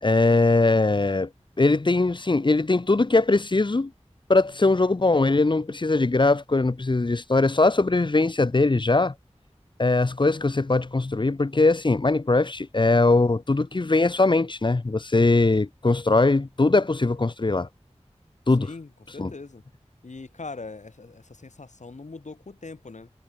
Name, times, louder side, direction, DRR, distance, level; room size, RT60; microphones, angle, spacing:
voice 1, 0.0-1.3 1.6-3.9 4.3-9.1 9.8-17.7 18.5-18.7 19.2-19.3, left 3 dB, 40° left, 0.7 m, -21 dB
voice 2, 18.6-19.6 20.0-23.1, left 3 dB, 90° left, 2.5 m, -41 dB
wide cardioid pair, 45°, 12 cm